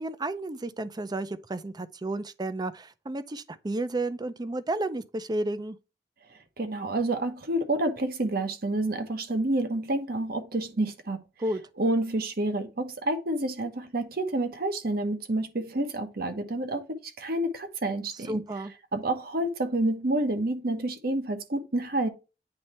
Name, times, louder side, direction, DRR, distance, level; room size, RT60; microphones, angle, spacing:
voice 1, 0.0-5.8 11.4-11.6 18.3-18.7, right 2 dB, 25° right, 0.5 m, -32 dB
voice 2, 6.6-11.2 11.8-18.4 18.9-22.1, right 1 dB, 55° right, 1.1 m, -29 dB
8.7 x 3.2 x 4.2 m
head